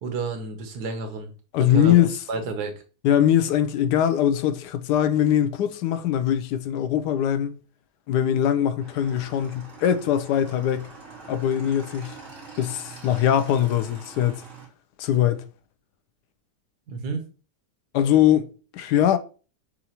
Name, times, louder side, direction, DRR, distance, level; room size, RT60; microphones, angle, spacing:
voice 1, 0.0-1.3 1.7-1.9 2.3-2.8 16.9-17.2, right 4 dB, 75° right, 1.5 m, -30 dB
voice 2, 1.5-2.2 3.0-7.5 8.1-10.9 11.3-12.2 12.6-14.4 15.0-15.4 17.9-19.2, left 10 dB, 80° left, 1.1 m, -22 dB
Motorcycle / Engine, 8.8-14.7, right 4 dB, 45° right, 2.3 m, -44 dB
6.8 x 2.5 x 2.9 m
omnidirectional pair, 1.8 m